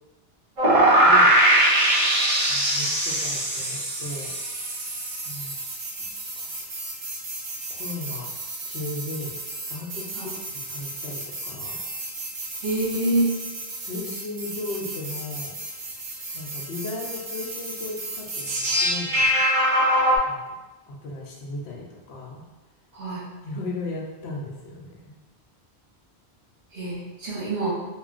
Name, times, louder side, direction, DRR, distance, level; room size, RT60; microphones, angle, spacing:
sound 1, 0.6-20.2, right 1 dB, 50° right, 0.4 m, -25 dB
voice 1, 1.0-1.3 2.5-4.3 5.2-5.6 6.0-6.5 7.7-8.3 8.7-9.4 9.7-11.8 13.8-15.5 16.3-19.3 20.2-20.4 20.9-22.4 23.4-25.2, left 2 dB, 75° left, -2 dB, 0.8 m, -36 dB
voice 2, 12.6-13.3 22.9-23.2 26.7-27.7, right 1 dB, 65° right, -8 dB, 1.3 m, -26 dB
3.0 x 2.1 x 2.4 m, 1.1 s
omnidirectional pair, 1.1 m